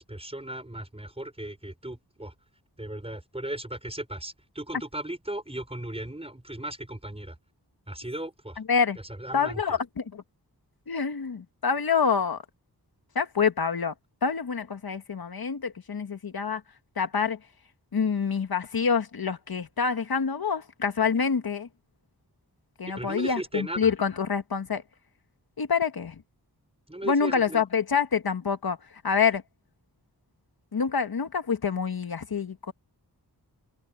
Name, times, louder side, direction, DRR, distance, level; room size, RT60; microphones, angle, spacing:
voice 1, 0.0-2.3 2.8-7.4 7.9-8.6 9.2-9.6 22.9-23.9 26.9-27.6, right 1 dB, 15° right, 5.8 m, -36 dB
voice 2, 9.3-10.2 10.9-12.4 13.2-13.9 14.2-16.6 17.0-17.4 17.9-21.7 22.8-24.8 25.6-26.2 27.0-28.8 29.0-29.4 30.7-32.7, left 6 dB, 65° left, 1.7 m, -26 dB
wide cardioid pair, 75°, 40 cm